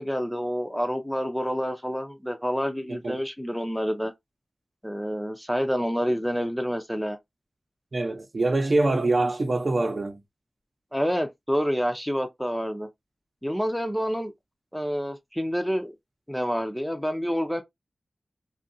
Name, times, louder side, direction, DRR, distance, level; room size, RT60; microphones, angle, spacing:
voice 1, 0.0-4.1 4.8-7.2 10.9-12.9 13.4-14.3 14.7-15.9 16.3-17.6, equal, ahead, 0.5 m, -28 dB
voice 2, 7.9-10.2, right 2 dB, 50° right, 0.8 m, -24 dB
2.7 x 2.4 x 2.6 m
wide cardioid pair, 80°, 0 cm